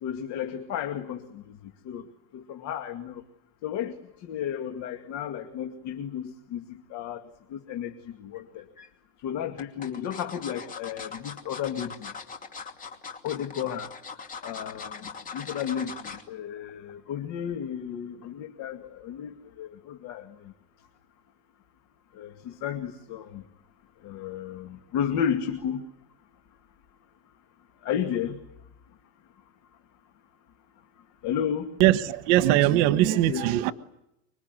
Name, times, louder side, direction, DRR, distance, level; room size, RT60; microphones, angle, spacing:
voice 1, 0.0-1.4 1.8-2.1 2.3-3.2 3.6-7.2 7.5-8.7 9.2-12.1 13.2-13.9 14.4-20.5 22.1-23.4 24.0-25.8 27.8-28.4 31.2-31.7 33.3-33.5, left 9 dB, 60° left, 2.2 m, -33 dB
sound 1, 8.3-8.9 9.6-16.3 16.7-16.9 17.2-17.3, left 5 dB, 25° left, 2.7 m, -40 dB
voice 2, 31.8-33.7, right 14 dB, 80° right, 1.3 m, -21 dB
25.5 x 23.5 x 9.7 m
cardioid pair, 160°, 31 cm